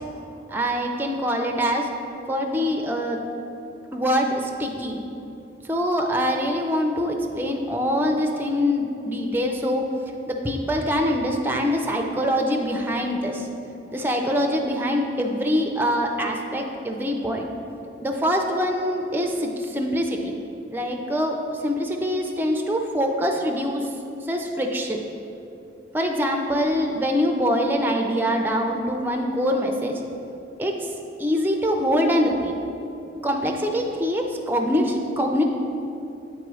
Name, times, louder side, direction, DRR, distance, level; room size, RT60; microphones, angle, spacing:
voice 1, 0.5-1.9 2.3-3.2 3.9-5.0 5.6-9.8 10.3-13.5 13.9-17.5 18.0-20.4 20.7-23.9 24.2-25.0 25.9-30.0 30.6-30.9 31.2-32.5 33.2-35.4, equal, 10° right, 2 dB, 0.4 m, -24 dB
8.3 x 3.0 x 4.8 m, 2.8 s
head